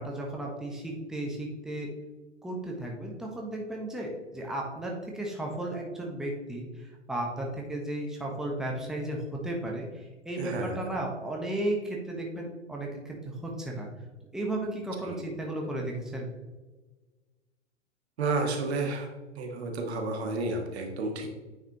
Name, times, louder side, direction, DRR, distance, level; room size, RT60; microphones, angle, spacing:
voice 1, 0.0-1.9 2.4-13.9 14.3-16.3, right 1 dB, ahead, -1 dB, 1.1 m, -34 dB
voice 2, 10.4-10.8 15.0-15.2 18.2-19.1 19.4-21.3, right 3 dB, 65° right, 3 dB, 1.6 m, -31 dB
9.4 x 4.7 x 3.0 m, 1.2 s
hypercardioid pair, 105°, 35 cm